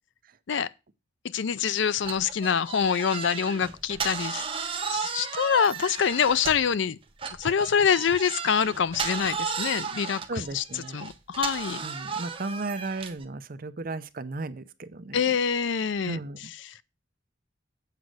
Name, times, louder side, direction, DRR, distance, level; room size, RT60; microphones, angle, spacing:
voice 1, 1.3-7.0 7.4-11.8 15.1-16.2 16.7-16.8, left 7 dB, 65° left, 0.4 m, -26 dB
sound 1, 2.0-6.8 7.2-13.2, right 6 dB, 25° right, 0.9 m, -34 dB
voice 2, 10.3-11.0 11.8-15.4 16.1-16.5, right 3 dB, 45° right, 0.6 m, -35 dB
8.2 x 5.2 x 6.3 m
head